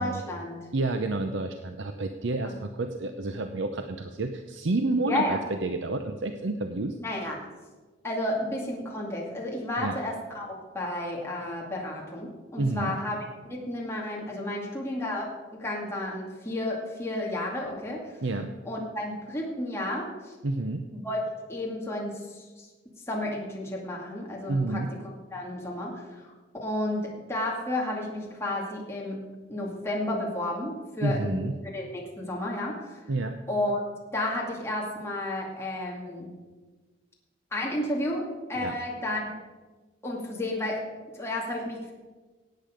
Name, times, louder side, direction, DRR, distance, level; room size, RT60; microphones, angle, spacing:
voice 1, 0.0-0.6 5.0-5.4 7.0-7.4 8.0-13.2 13.5-18.2 18.7-20.3 20.9-21.2 21.5-22.7 23.1-24.8 25.3-26.3 26.6-29.2 29.5-31.4 31.7-33.0 33.5-33.8 34.1-36.3 37.5-38.2 38.5-39.3 40.0-40.8 41.1-41.9, left 1 dB, 15° left, -3 dB, 2.2 m, -32 dB
voice 2, 0.7-7.0 9.8-10.0 12.6-12.9 18.2-18.5 20.4-20.9 24.5-24.9 31.0-31.5 33.1-33.4 38.6-38.7, right 2 dB, 70° right, 7 dB, 0.7 m, -29 dB
18.0 x 8.5 x 5.1 m, 1.3 s
head